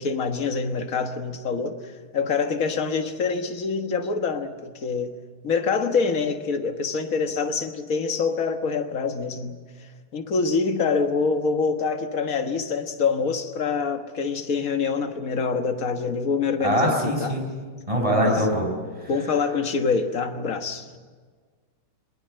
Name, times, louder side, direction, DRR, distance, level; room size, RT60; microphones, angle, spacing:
voice 1, 0.0-5.1 5.4-9.6 10.1-17.4 18.2-18.4 19.1-20.9, left 5 dB, 45° left, 6 dB, 1.7 m, -25 dB
voice 2, 16.6-17.4 17.9-18.7, equal, 15° right, 2 dB, 5.6 m, -22 dB
22.5 x 21.0 x 7.8 m, 1.5 s
omnidirectional pair, 2.3 m